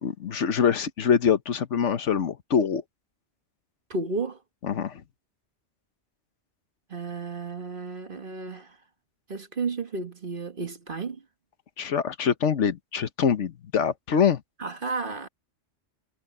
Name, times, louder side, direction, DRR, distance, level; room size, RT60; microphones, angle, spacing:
voice 1, 0.0-2.8 4.7-5.0 11.8-14.4, left 7 dB, 80° left, 1.4 m, -24 dB
voice 2, 3.9-4.4 6.9-8.8 9.3-11.2 14.6-15.3, right 3 dB, 45° right, 1.8 m, -32 dB
omnidirectional pair, 1.2 m